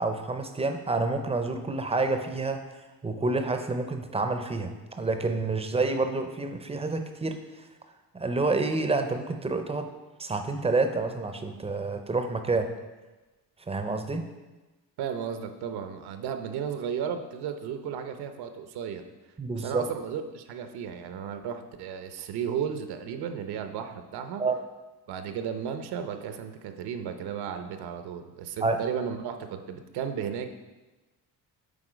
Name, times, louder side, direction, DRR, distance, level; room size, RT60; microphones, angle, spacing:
voice 1, 0.0-2.6 3.0-7.4 8.1-9.9 10.2-12.7 13.7-14.2 19.4-19.8 24.4-24.6 28.6-28.8, right 3 dB, 15° right, 6 dB, 0.5 m, -28 dB
voice 2, 15.0-19.0 19.5-24.4 25.1-30.5, right 8 dB, 80° right, 7 dB, 0.8 m, -34 dB
8.7 x 3.9 x 5.1 m, 1.2 s
cardioid pair, 130°, 38 cm